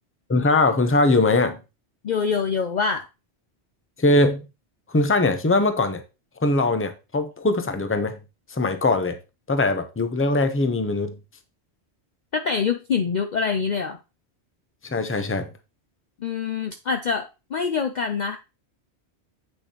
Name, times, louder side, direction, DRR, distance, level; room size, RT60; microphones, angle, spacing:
voice 1, 0.3-1.6 4.0-4.4 4.9-6.0 6.4-8.2 8.5-9.2 9.5-11.1 14.8-15.5, left 2 dB, 15° left, 8 dB, 0.6 m, -21 dB
voice 2, 2.0-3.1 12.3-14.0 16.2-18.4, left 5 dB, 50° left, 7 dB, 0.6 m, -25 dB
8.4 x 6.4 x 3.0 m, 0.28 s
omnidirectional pair, 1.1 m